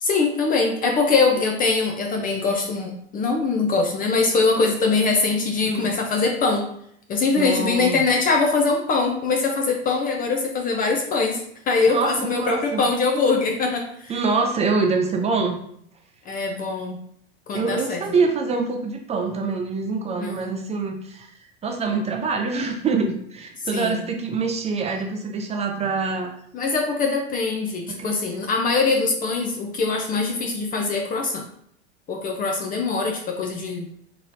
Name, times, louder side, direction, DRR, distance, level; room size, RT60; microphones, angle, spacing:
voice 1, 0.0-6.7 7.1-11.4 11.7-14.1 16.3-17.0 17.5-18.0 20.2-20.5 23.7-24.0 26.5-31.4 32.1-33.9, left 4 dB, 25° left, 2 dB, 0.6 m, -22 dB
voice 2, 7.4-8.0 11.9-12.8 14.1-15.6 17.5-21.3 21.6-26.3 27.9-28.2, right 4 dB, 20° right, 3 dB, 0.5 m, -25 dB
3.9 x 3.2 x 2.6 m, 0.68 s
hypercardioid pair, 95°, 32 cm